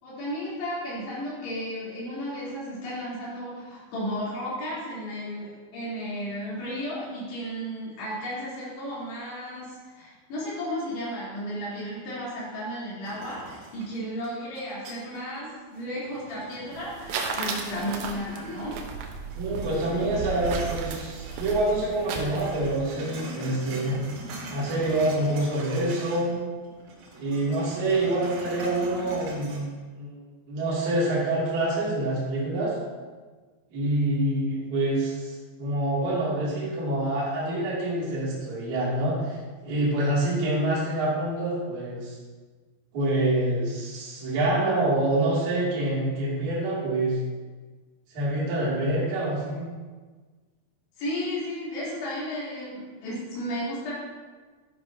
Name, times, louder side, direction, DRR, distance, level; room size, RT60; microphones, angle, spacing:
voice 1, 0.0-18.8 51.0-53.9, equal, 55° left, -9 dB, 5.7 m, -34 dB
sound 1, 13.0-15.4 15.8-19.0 19.3-21.8 22.1-26.3 26.6-29.6, right 2 dB, 70° right, 4.2 m, -42 dB
sound 2, 16.7-22.8, right 5 dB, 90° right, 3.7 m, -35 dB
voice 2, 19.3-24.0 24.5-26.4 27.1-29.7 30.0-30.2 30.5-32.7 33.7-39.4 39.6-42.2 42.9-47.2 48.1-49.6, right 1 dB, 40° right, -8 dB, 3.7 m, -26 dB
12.5 x 10.5 x 3.0 m, 1.4 s
omnidirectional pair, 5.8 m